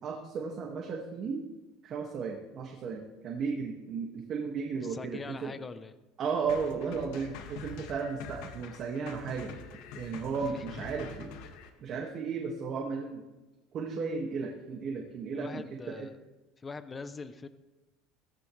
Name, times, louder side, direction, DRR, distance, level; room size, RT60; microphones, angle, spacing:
voice 1, 0.0-1.4 1.8-5.5 6.2-9.6 10.0-11.3 11.8-13.2 13.7-16.1, right 5 dB, 40° right, 0 dB, 2.0 m, -35 dB
voice 2, 4.8-5.9 10.5-10.7 11.1-11.2 15.3-16.2 16.6-17.5, left 4 dB, 20° left, 11 dB, 0.7 m, -42 dB
sound 1, 6.5-11.7, left 5 dB, 75° left, 1.9 m, -45 dB
17.5 x 15.0 x 3.3 m, 1.1 s
cardioid pair, 140°, 0 cm